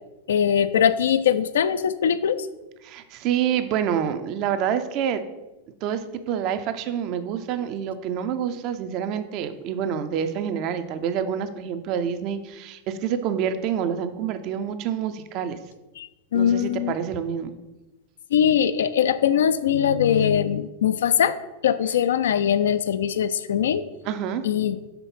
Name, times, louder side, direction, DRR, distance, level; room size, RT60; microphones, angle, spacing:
voice 1, 0.3-2.5 16.0-16.9 18.3-21.4 21.6-23.8 24.4-24.8, left 8 dB, 60° left, 12 dB, 0.3 m, -21 dB
voice 2, 2.8-5.2 5.8-15.6 16.3-17.5 24.1-24.4, right 8 dB, 40° right, 10 dB, 0.5 m, -27 dB
5.8 x 3.8 x 5.2 m, 1.0 s
figure-of-eight pair, 90°, 0 cm